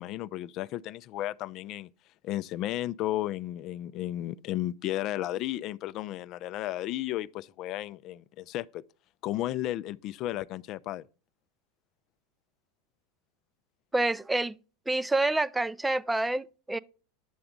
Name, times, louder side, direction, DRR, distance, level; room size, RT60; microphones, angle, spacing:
voice 1, 0.0-1.9 2.2-8.8 9.2-11.0, left 14 dB, 50° left, 0.4 m, -33 dB
voice 2, 13.9-14.6 14.9-16.8, right 2 dB, 10° right, 0.4 m, -27 dB
10.5 x 6.8 x 3.7 m
hypercardioid pair, 100°, 0 cm